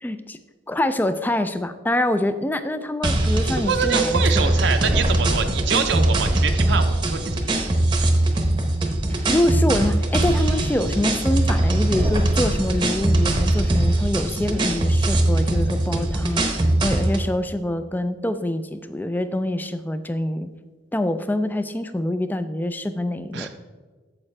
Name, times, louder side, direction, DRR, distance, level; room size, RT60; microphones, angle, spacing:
voice 1, 0.0-0.4 0.7-4.2 9.1-20.5 20.9-23.5, left 1 dB, 10° left, 11 dB, 0.3 m, -25 dB
sound 1, 3.0-17.3, right 1 dB, 25° right, 0.8 m, -21 dB
voice 2, 3.6-7.6 23.3-23.5, right 6 dB, 70° right, 6 dB, 0.6 m, -25 dB
8.8 x 7.3 x 3.3 m, 1.4 s
head